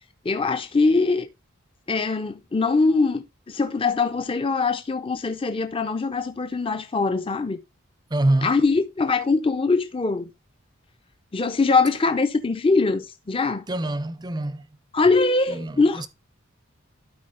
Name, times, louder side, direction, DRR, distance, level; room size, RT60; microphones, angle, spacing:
voice 1, 0.2-1.3 1.9-7.6 8.4-10.3 11.3-13.6 14.9-16.0, left 3 dB, 25° left, 0.5 m, -22 dB
voice 2, 8.1-8.5 13.7-14.7 15.5-16.1, right 1 dB, 20° right, 0.5 m, -25 dB
12.0 x 4.7 x 3.8 m
head